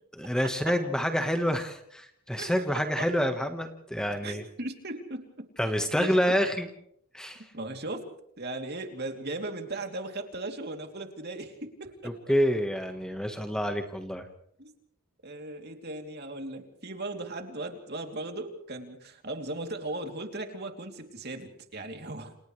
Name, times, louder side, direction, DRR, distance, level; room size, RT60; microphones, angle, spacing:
voice 1, 0.1-4.4 5.6-6.7 7.1-7.4 12.0-14.2, equal, 5° left, 5 dB, 1.4 m, -28 dB
voice 2, 2.4-3.1 4.2-5.5 5.9-6.3 7.5-8.1 8.4-12.2 14.6-14.7 15.2-22.4, right 2 dB, 45° right, 4 dB, 3.0 m, -37 dB
29.5 x 28.5 x 3.3 m, 0.70 s
head